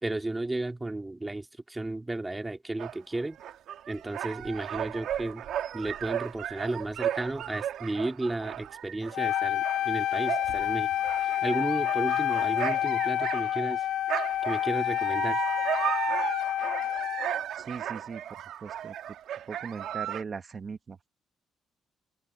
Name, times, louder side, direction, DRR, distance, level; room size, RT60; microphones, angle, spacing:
voice 1, 0.0-3.4 3.9-5.4 5.7-10.9 11.2-13.8 14.5-15.4, right 2 dB, 15° right, 3.0 m, -33 dB
sound 1, 2.8-13.8 14.1-20.2, right 10 dB, 75° right, 1.8 m, -35 dB
Wind instrument woodwind instrument, 9.1-17.4, left 12 dB, 75° left, 0.4 m, -28 dB
voice 2, 17.6-18.2 18.6-18.9 19.5-21.1, right 5 dB, 40° right, 1.4 m, -39 dB
open air
cardioid pair, 90°, 0 cm